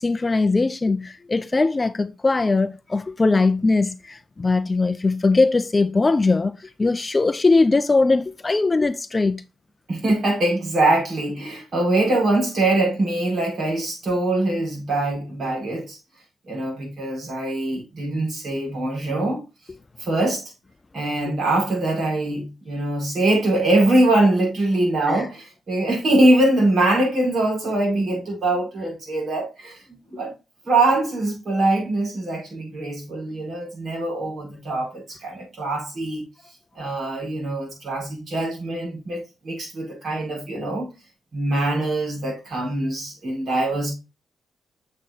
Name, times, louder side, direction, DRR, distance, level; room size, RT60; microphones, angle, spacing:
voice 1, 0.0-9.4 25.1-25.3, left 3 dB, 20° left, 0.4 m, -20 dB
voice 2, 9.9-16.0 16.5-19.4 20.0-20.4 20.9-30.3 30.6-36.2 36.8-40.9 41.3-43.9, right 2 dB, 45° right, 5.5 m, -23 dB
8.1 x 7.5 x 2.7 m
wide cardioid pair, 150°, 0 cm